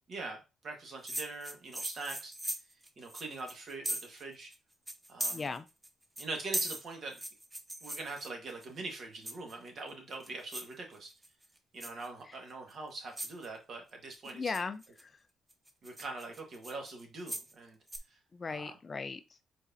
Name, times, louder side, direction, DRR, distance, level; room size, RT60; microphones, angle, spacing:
voice 1, 0.1-2.3 3.0-4.5 5.1-5.4 6.2-7.2 7.8-11.1 11.7-14.5 15.8-17.8 18.1-18.2 18.5-18.7, right 3 dB, 55° right, 1.6 m, -43 dB
sound 1, 1.1-4.2 4.5-4.6 4.9-5.9 6.2-8.7 9.3-9.7 10.1-10.7 11.1-11.5 11.8-12.1 12.7-12.8 13.2-13.5 14.1-15.0 15.5-17.5 17.9-18.0, right 1 dB, 15° right, 0.6 m, -39 dB
voice 2, 5.3-5.7 12.3-12.4 14.3-15.2 18.3-19.2, left 4 dB, 35° left, 0.4 m, -38 dB
4.8 x 4.1 x 2.7 m
cardioid pair, 90°, 0 cm